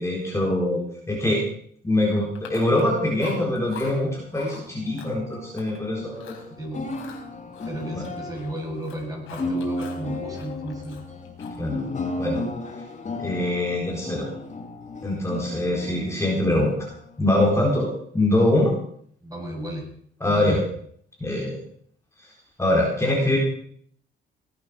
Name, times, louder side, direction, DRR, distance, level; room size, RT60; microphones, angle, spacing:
voice 1, 0.0-1.4 1.8-6.3 7.9-8.0 11.6-11.8 12.2-12.4 13.2-14.3 15.0-16.9 17.2-17.9 18.1-18.7 20.2-20.6 21.2-21.6 22.6-23.4, left 1 dB, 15° left, -2 dB, 4.3 m, -23 dB
Chewing mastication, 2.4-2.9 3.2-3.9 4.3-4.6 5.0-5.8 6.1-6.5 6.9-8.5 8.8-10.0 10.3-11.7, left 7 dB, 85° left, 4.4 m, -43 dB
sound 1, 3.1-17.8, left 2 dB, 35° left, 2.6 m, -35 dB
voice 2, 7.6-11.0 13.3-13.4 19.2-19.9 20.2-20.6, right 1 dB, 20° right, 0 dB, 7.9 m, -34 dB
18.5 x 9.3 x 6.3 m, 0.63 s
cardioid pair, 90°, 20 cm